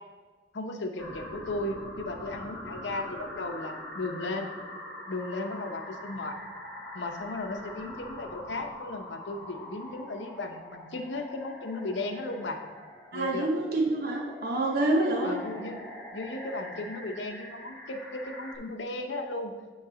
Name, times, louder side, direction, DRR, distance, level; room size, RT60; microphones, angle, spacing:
voice 1, 0.5-4.5 5.1-6.4 6.9-12.6 13.1-13.5 15.2-15.9 16.1-19.6, left 2 dB, 80° left, 5 dB, 0.8 m, -35 dB
sound 1, 1.0-18.6, left 1 dB, 10° left, 1.5 m, -43 dB
voice 2, 13.1-15.4, right 2 dB, 55° right, -1 dB, 0.8 m, -27 dB
9.4 x 3.2 x 5.0 m, 1.4 s
head